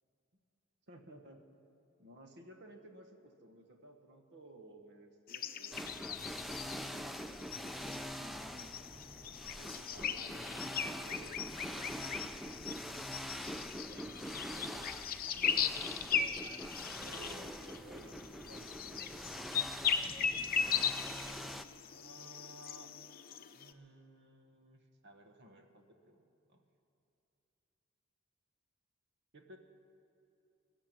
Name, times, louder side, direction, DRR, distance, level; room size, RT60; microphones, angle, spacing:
voice 1, 0.9-1.4 2.0-7.9 8.2-9.0 9.6-15.6 16.9-19.5 20.1-20.5 21.9-22.9 23.5-26.6 29.3-29.6, right 1 dB, 55° right, 5 dB, 1.4 m, -57 dB
sound 1, 5.3-23.7, left 7 dB, 45° left, 0.7 m, -38 dB
sound 2, 5.7-21.6, equal, ahead, 0.4 m, -44 dB
20.0 x 7.5 x 8.8 m, 2.8 s
head